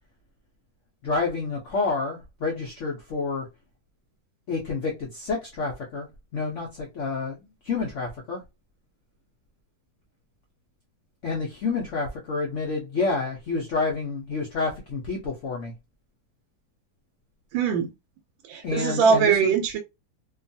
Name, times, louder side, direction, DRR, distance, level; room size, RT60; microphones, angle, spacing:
voice 1, 1.0-3.5 4.5-6.1 6.3-7.4 7.6-8.4 11.2-15.7 18.6-19.5, left 4 dB, 85° left, 0.6 m, -29 dB
voice 2, 17.5-17.9 18.5-19.8, right 6 dB, 85° right, 1.3 m, -21 dB
2.9 x 2.3 x 2.6 m
omnidirectional pair, 2.1 m